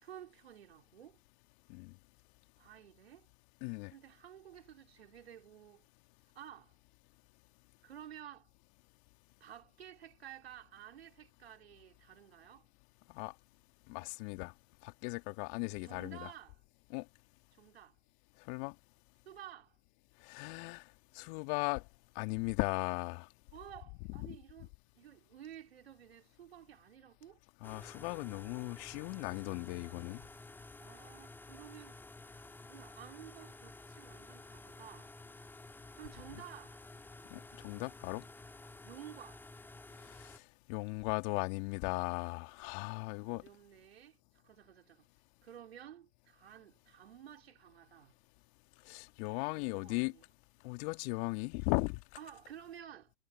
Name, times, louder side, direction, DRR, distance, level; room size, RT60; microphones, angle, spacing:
voice 1, 0.0-1.2 2.6-3.3 3.9-5.9 6.3-6.7 7.8-8.5 9.4-12.7 15.7-16.6 17.6-18.0 19.3-19.8 23.5-27.4 30.8-32.0 32.3-32.4 32.7-35.1 36.0-36.8 38.8-39.4 43.1-45.0 45.4-48.1 49.3-50.2 52.2-53.1, right 10 dB, 70° right, 4.1 m, -53 dB
voice 2, 3.6-3.9 13.1-13.3 13.9-14.5 14.8-16.3 16.9-17.1 18.5-18.7 20.2-20.8 21.1-21.8 22.2-23.3 27.6-30.2 37.3-38.2 40.2-40.4 40.7-43.4 48.8-50.1 50.6-52.0, left 31 dB, 45° left, 2.3 m, -37 dB
sound 1, 27.6-40.4, left 2 dB, 5° left, 3.6 m, -52 dB
hypercardioid pair, 105°, 32 cm